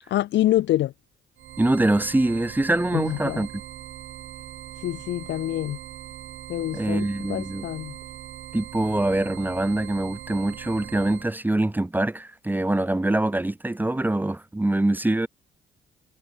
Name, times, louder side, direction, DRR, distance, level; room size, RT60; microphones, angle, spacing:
voice 1, 0.1-0.9 2.9-3.5 4.8-5.8 6.5-8.0, left 14 dB, 65° left, 0.4 m, -26 dB
sound 1, 1.4-11.3, right 13 dB, 80° right, 4.5 m, -41 dB
voice 2, 1.6-3.5 6.7-7.7 8.5-15.3, right 1 dB, 10° right, 0.8 m, -24 dB
cardioid pair, 90°, 20 cm